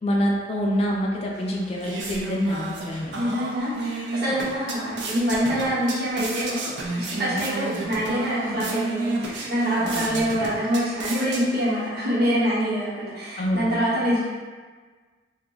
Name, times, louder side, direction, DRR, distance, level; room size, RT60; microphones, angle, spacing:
voice 1, 0.0-3.3 9.8-10.3 13.4-13.7, equal, 35° left, -2 dB, 0.3 m, -26 dB
sound 1, 1.3-11.9, right 2 dB, 80° right, 0.4 m, -32 dB
voice 2, 3.1-6.6 6.9-14.2, equal, 55° right, -8 dB, 1.0 m, -25 dB
2.4 x 2.4 x 3.6 m, 1.4 s
head